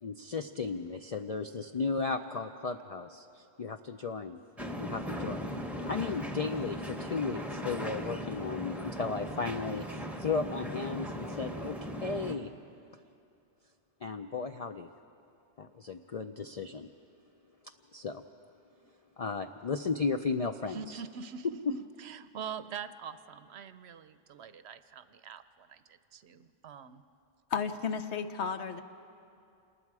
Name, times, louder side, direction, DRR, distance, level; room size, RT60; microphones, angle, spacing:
voice 1, 0.0-4.4 4.8-5.5 5.9-11.8 12.0-12.5 14.0-14.9 15.6-16.9 17.9-18.2 19.2-21.0, left 4 dB, 50° left, 0.4 m, -35 dB
sound 1, 4.6-12.4, equal, ahead, 1.1 m, -38 dB
voice 2, 20.7-27.0, right 7 dB, 70° right, 0.9 m, -44 dB
voice 3, 27.5-28.8, left 6 dB, 70° left, 1.1 m, -33 dB
27.5 x 19.5 x 4.8 m
omnidirectional pair, 1.2 m